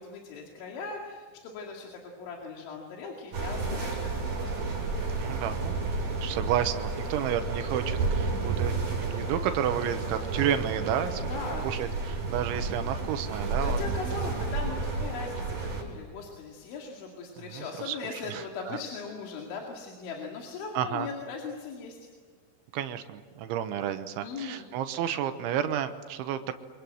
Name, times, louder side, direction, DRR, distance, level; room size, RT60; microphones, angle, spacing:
voice 1, 0.0-4.4 11.3-11.7 13.6-22.1 24.2-24.7, left 4 dB, 80° left, 0 dB, 4.8 m, -39 dB
sound 1, 3.3-15.8, right 3 dB, 45° right, 6.8 m, -31 dB
voice 2, 5.2-8.8 9.0-11.2 11.6-13.8 17.4-18.8 20.8-21.1 22.7-26.5, right 10 dB, 85° right, 8 dB, 3.5 m, -31 dB
29.0 x 25.5 x 7.8 m, 1.5 s
omnidirectional pair, 5.3 m